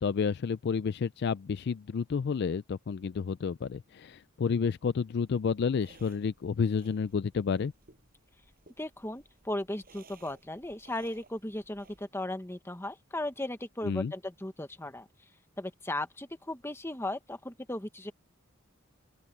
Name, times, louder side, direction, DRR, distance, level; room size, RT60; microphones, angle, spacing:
voice 1, 0.0-7.7 13.8-14.1, left 6 dB, 50° left, 0.4 m, -30 dB
sound 1, 5.2-12.1, right 3 dB, 45° right, 7.4 m, -60 dB
voice 2, 8.8-15.1 15.6-18.1, left 1 dB, 10° left, 1.2 m, -36 dB
open air
head